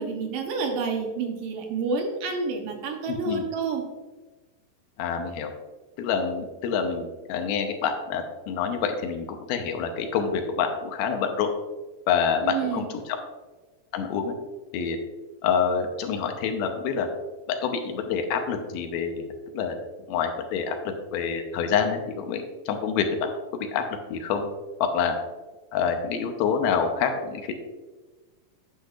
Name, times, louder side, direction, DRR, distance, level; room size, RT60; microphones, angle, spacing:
voice 1, 0.0-3.8 12.4-12.9, right 4 dB, 75° right, 3 dB, 2.6 m, -29 dB
voice 2, 3.1-3.4 5.0-5.5 6.0-11.5 12.1-13.2 13.9-14.4 14.7-15.0 15.4-17.1 17.5-19.8 20.1-20.8 21.1-23.3 23.7-24.5 24.8-25.1 25.7-27.5, left 6 dB, 90° left, 5 dB, 2.8 m, -27 dB
9.7 x 8.5 x 2.5 m, 1.2 s
omnidirectional pair, 4.2 m